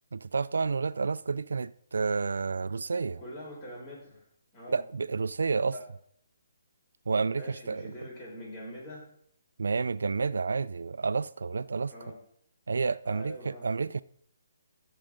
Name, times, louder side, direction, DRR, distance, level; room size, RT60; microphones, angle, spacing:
voice 1, 0.1-3.2 4.7-5.7 7.1-7.9 9.6-11.9 12.7-14.0, right 4 dB, 80° right, 0.4 m, -30 dB
voice 2, 3.2-4.3 4.5-4.8 5.7-5.8 7.3-9.1 11.9-12.2 13.0-13.7, equal, 30° left, 5.3 m, -43 dB
14.0 x 7.7 x 3.7 m
hypercardioid pair, 155°, 0 cm